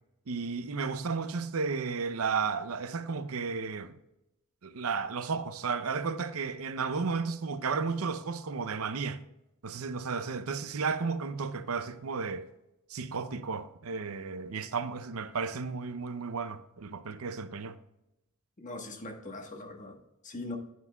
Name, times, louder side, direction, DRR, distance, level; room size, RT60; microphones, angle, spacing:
voice 1, 0.3-4.0 4.6-9.2 9.6-12.5 12.9-17.8, right 5 dB, 85° right, 0.6 m, -33 dB
voice 2, 18.6-20.6, left 2 dB, 35° left, 1.3 m, -41 dB
9.6 x 9.6 x 2.3 m
head